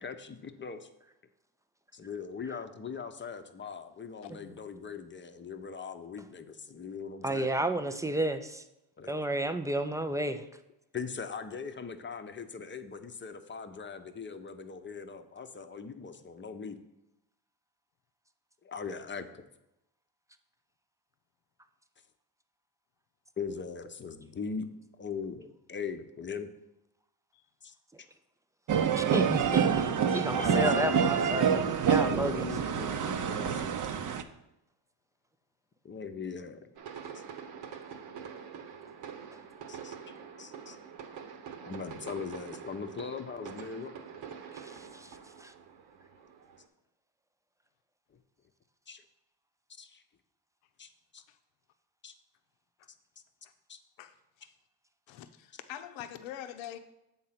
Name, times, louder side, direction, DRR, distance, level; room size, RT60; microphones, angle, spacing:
voice 1, 0.0-0.9 1.9-7.5 9.0-9.3 10.5-10.6 10.9-16.8 18.6-19.4 23.4-24.7 25.0-26.5 27.6-27.7 30.3-31.0 32.1-33.8 35.8-36.7 37.1-37.2 39.7-40.0 40.4-40.8 41.6-43.9 48.9-49.0 49.8-50.0 50.8-51.2 52.0-52.1 53.7-53.8, left 5 dB, 25° left, 8 dB, 0.7 m, -40 dB
voice 2, 4.2-4.6 54.0-54.5 55.1-56.8, left 11 dB, 70° left, 9 dB, 0.8 m, -44 dB
voice 3, 7.2-8.6 9.1-10.4 29.0-29.8 30.1-32.5 44.6-45.1 45.4-45.5, right 1 dB, 10° right, 9 dB, 0.3 m, -32 dB
sound 1, 28.7-34.2, right 7 dB, 40° right, 0.7 m, -27 dB
sound 2, 36.8-46.7, right 7 dB, 65° right, 1.1 m, -45 dB
7.5 x 3.9 x 5.7 m, 0.88 s
supercardioid pair, 75°, 48 cm